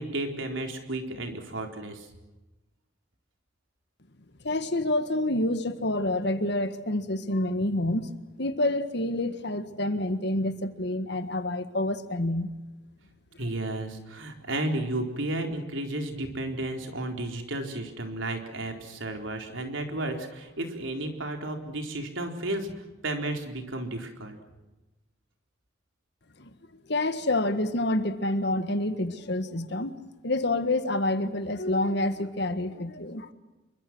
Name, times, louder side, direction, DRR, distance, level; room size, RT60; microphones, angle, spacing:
voice 1, 0.0-2.1 13.4-22.7 23.0-24.4, right 1 dB, 75° right, 4 dB, 4.3 m, -33 dB
voice 2, 4.4-12.5 13.5-13.6 26.4-26.5 26.9-29.9 30.2-33.3, left 1 dB, 55° left, 10 dB, 1.7 m, -28 dB
27.0 x 24.0 x 6.3 m, 1.1 s
head